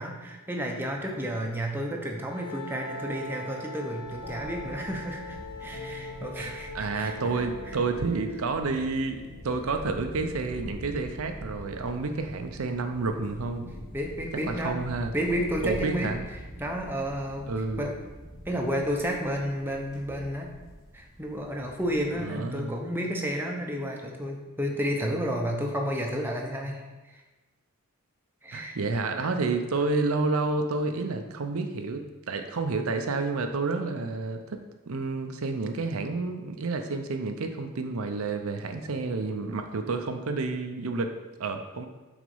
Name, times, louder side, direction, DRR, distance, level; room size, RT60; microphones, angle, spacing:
voice 1, 0.0-7.8 13.9-14.8 15.1-16.1 16.6-17.5 17.8-18.0 18.5-20.5 20.9-27.2 28.4-28.8 29.2-29.3, equal, 10° right, 0 dB, 0.7 m, -31 dB
Wind instrument woodwind instrument, 2.3-8.2, left 2 dB, 80° left, 0.9 m, -43 dB
sound 1, 2.7-10.4, left 1 dB, 50° left, 1.1 m, -45 dB
sound 2, 4.0-22.5, equal, 15° left, 2.1 m, -45 dB
voice 2, 6.4-13.7 14.3-15.1 15.6-16.2 17.5-17.9 22.2-22.7 28.5-34.6 34.9-41.9, right 3 dB, 70° right, 6 dB, 0.6 m, -30 dB
6.1 x 4.0 x 5.4 m, 1.2 s
head